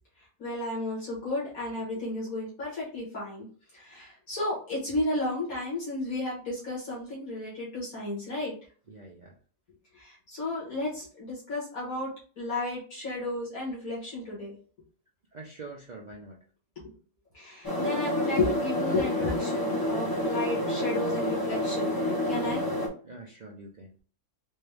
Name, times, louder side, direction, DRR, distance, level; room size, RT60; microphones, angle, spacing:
voice 1, 0.4-3.5 3.7-8.6 9.9-12.1 12.4-14.5 17.3-21.9 22.3-22.6, left 2 dB, 60° left, -7 dB, 2.0 m, -33 dB
voice 2, 8.9-9.4 15.3-16.4 22.5-22.8 23.0-24.0, right 2 dB, 90° right, -2 dB, 0.3 m, -45 dB
sound 1, 17.6-22.9, left 1 dB, 35° left, 0.3 m, -29 dB
4.3 x 2.3 x 3.3 m, 0.40 s
omnidirectional pair, 1.7 m